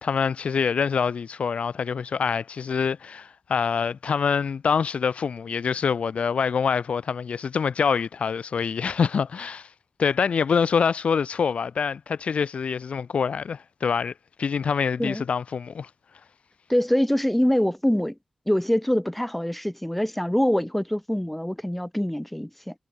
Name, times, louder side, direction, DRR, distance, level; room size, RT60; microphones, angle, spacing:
voice 1, 0.0-9.7 10.0-14.1 14.4-15.9, left 6 dB, 85° left, 1.6 m, -25 dB
voice 2, 16.7-18.1 18.5-22.7, equal, 5° left, 5.6 m, -24 dB
wide cardioid pair, 130°, 2 cm